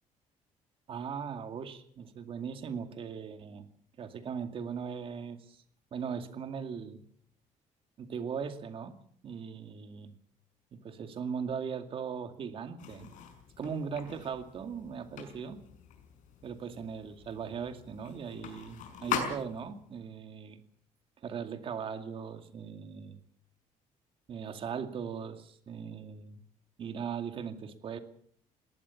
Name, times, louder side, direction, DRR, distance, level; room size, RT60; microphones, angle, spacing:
voice 1, 0.9-3.7 4.0-5.6 5.9-7.0 8.0-9.0 9.2-10.1 10.7-13.1 13.6-15.6 16.4-20.6 21.2-23.2 24.3-26.4 26.8-28.0, right 6 dB, 40° right, 8 dB, 2.3 m, -39 dB
sound 1, 12.8-19.9, left 7 dB, 75° left, 6.2 m, -41 dB
21.0 x 18.5 x 7.1 m, 0.63 s
cardioid pair, 160°, 13 cm